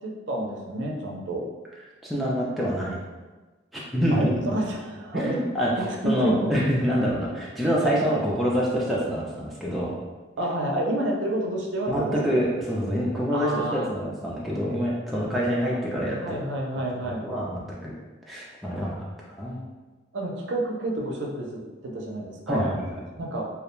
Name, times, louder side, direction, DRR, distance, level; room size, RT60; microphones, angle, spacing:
voice 1, 0.0-1.5 4.1-5.4 5.7-6.5 10.4-12.4 13.3-13.9 16.2-17.3 20.1-22.7 23.1-23.4, right 1 dB, 75° right, 0 dB, 0.4 m, -29 dB
voice 2, 2.0-3.0 3.7-4.3 5.1-5.7 6.0-9.9 11.9-16.2 17.0-17.9 18.3-19.1 19.4-19.6 22.5-23.0, equal, ahead, -6 dB, 0.3 m, -26 dB
2.3 x 2.1 x 3.0 m, 1.2 s
head